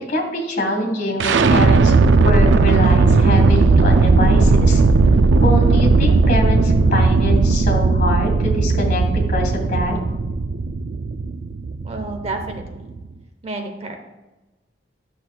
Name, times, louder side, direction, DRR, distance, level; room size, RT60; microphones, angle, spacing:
voice 1, 0.1-4.8 5.4-9.0 9.3-10.0, left 1 dB, 50° left, 1 dB, 2.6 m, -24 dB
sound 1, 1.2-13.1, right 3 dB, 75° right, 0.4 m, -16 dB
voice 2, 11.8-12.9 13.4-14.0, right 2 dB, 35° right, 4 dB, 0.8 m, -30 dB
12.0 x 6.2 x 2.3 m, 1.1 s
head